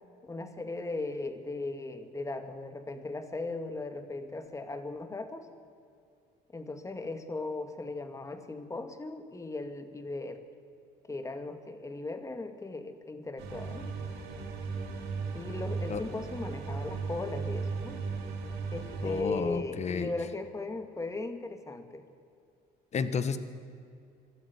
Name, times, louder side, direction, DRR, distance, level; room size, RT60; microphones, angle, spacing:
voice 1, 0.2-5.5 6.5-10.4 11.0-13.9 15.3-18.0 18.7-22.0, left 2 dB, 20° left, 8 dB, 2.1 m, -37 dB
sound 1, 13.4-19.2, right 4 dB, 80° right, 4.1 m, -36 dB
voice 2, 19.0-20.1 22.9-23.4, left 6 dB, 40° left, 12 dB, 1.5 m, -31 dB
24.5 x 13.0 x 9.8 m, 2.4 s
cardioid pair, 110°, 17 cm